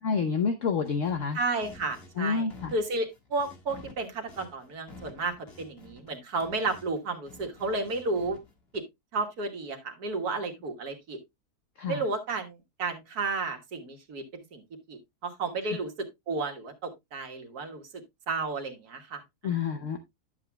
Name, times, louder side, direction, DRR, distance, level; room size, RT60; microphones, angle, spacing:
voice 1, 0.0-1.4 2.2-2.7 11.8-12.0 19.4-20.0, left 5 dB, 55° left, 1.1 m, -28 dB
sound 1, 0.8-7.0 7.3-8.8, left 3 dB, 40° left, 1.9 m, -51 dB
voice 2, 1.3-8.4 8.7-8.8 9.1-11.2 11.9-14.3 14.5-14.6 14.9-17.8 18.3-19.5, right 3 dB, 70° right, 1.9 m, -32 dB
11.0 x 7.7 x 2.2 m
omnidirectional pair, 1.7 m